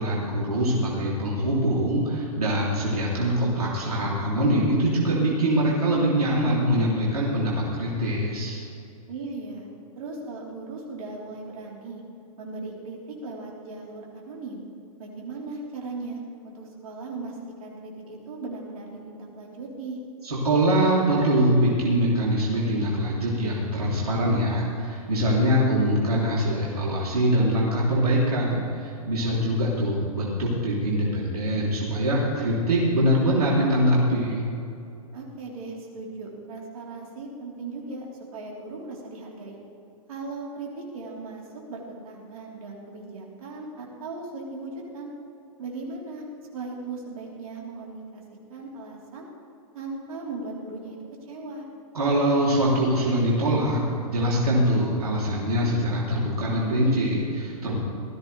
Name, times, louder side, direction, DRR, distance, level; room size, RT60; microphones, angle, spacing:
voice 1, 0.0-8.6 20.2-34.4 51.9-57.8, equal, 90° right, -5 dB, 3.3 m, -23 dB
voice 2, 9.1-9.7 10.0-12.0 12.4-14.6 15.0-20.0 29.2-29.6 35.1-38.1 38.3-39.6 40.1-45.1 45.6-46.3 46.5-48.2 48.5-49.3 49.7-51.0 51.3-51.7, right 3 dB, 70° right, -3 dB, 3.9 m, -38 dB
19.0 x 14.5 x 3.4 m, 2.7 s
hypercardioid pair, 115°, 19 cm